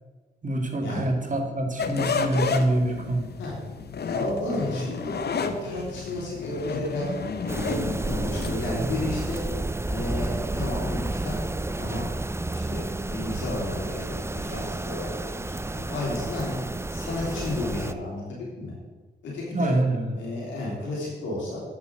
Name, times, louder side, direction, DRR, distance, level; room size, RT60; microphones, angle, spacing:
voice 1, 0.4-3.3 19.5-20.2, right 1 dB, 45° right, 2 dB, 2.0 m, -25 dB
sound 1, 1.8-8.7, left 5 dB, 60° left, 0.8 m, -31 dB
voice 2, 4.0-7.1 7.6-9.4 9.9-11.3 11.8-12.1 12.7-15.5 15.9-16.5 16.9-18.7 19.2-19.7 20.1-21.6, left 2 dB, 90° left, -5 dB, 3.1 m, -32 dB
sound 2, 7.5-17.9, right 2 dB, 15° right, 0.5 m, -31 dB
8.5 x 6.3 x 6.3 m, 1.3 s
supercardioid pair, 40°, 19 cm